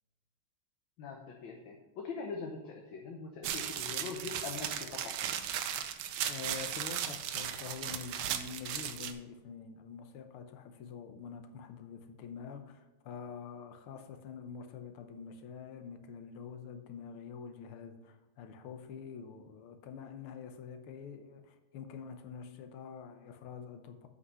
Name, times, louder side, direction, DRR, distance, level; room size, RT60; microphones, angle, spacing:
voice 1, 1.0-5.5, left 4 dB, 65° left, 2 dB, 1.5 m, -43 dB
sound 1, 3.4-9.1, right 9 dB, 80° right, 1.5 m, -36 dB
voice 2, 6.3-24.1, left 6 dB, 85° left, 7 dB, 1.7 m, -46 dB
8.1 x 5.6 x 5.5 m, 1.1 s
omnidirectional pair, 2.3 m